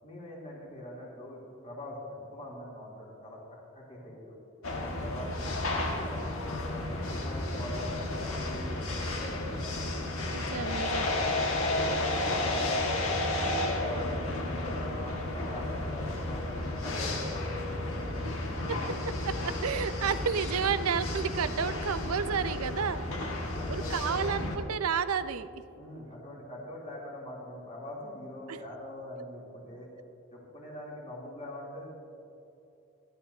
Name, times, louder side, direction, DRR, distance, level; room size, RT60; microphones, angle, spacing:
voice 1, 0.0-3.4 3.7-4.4 4.8-10.1 11.5-12.9 13.3-18.2 23.4-24.1 25.7-29.9 30.3-32.0, left 1 dB, 35° left, -5 dB, 3.2 m, -42 dB
sound 1, 4.6-24.6, left 2 dB, 70° left, 1.8 m, -32 dB
voice 2, 10.3-11.1 18.7-18.8 19.1-23.0 23.7-25.5 28.5-28.6, right 6 dB, 85° right, 12 dB, 0.6 m, -31 dB
27.0 x 11.0 x 2.8 m, 2.8 s
head